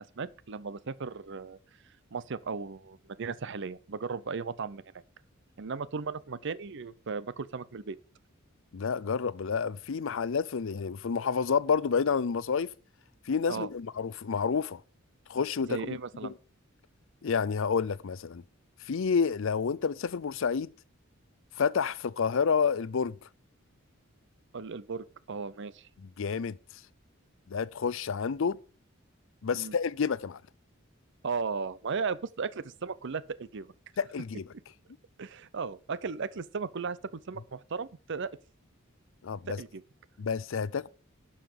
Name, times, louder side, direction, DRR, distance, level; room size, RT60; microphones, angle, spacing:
voice 1, 0.2-1.6 2.1-4.9 5.6-8.0 13.5-13.7 15.6-16.3 24.5-25.9 29.5-29.7 31.2-33.7 35.2-38.3 39.6-39.8, right 5 dB, 60° right, 0.6 m, -36 dB
voice 2, 8.7-12.7 13.3-14.8 15.3-16.3 17.2-18.4 18.8-20.7 21.5-23.2 26.0-26.6 27.5-28.6 29.4-30.4 34.0-34.5 39.2-39.6 40.2-40.9, left 6 dB, 70° left, 0.5 m, -29 dB
11.5 x 5.8 x 6.5 m
head